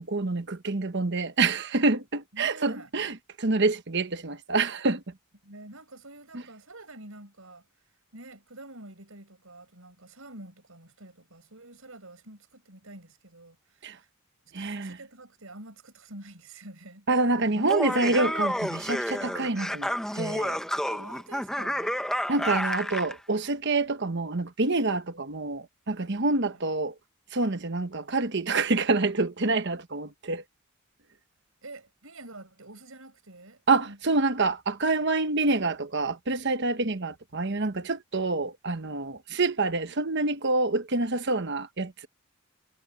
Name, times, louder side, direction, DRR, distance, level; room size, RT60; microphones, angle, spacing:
voice 1, 0.0-5.0 13.8-13.9 14.5-15.0 17.1-20.6 22.3-26.9 27.3-30.4 33.7-42.1, right 3 dB, 55° right, 1.2 m, -27 dB
voice 2, 2.3-2.9 5.4-7.7 8.1-14.1 14.5-17.1 20.9-22.0 26.5-26.6 31.6-34.4, right 2 dB, 70° right, 6.0 m, -48 dB
Laughter, 17.6-23.2, equal, 5° left, 1.4 m, -30 dB
head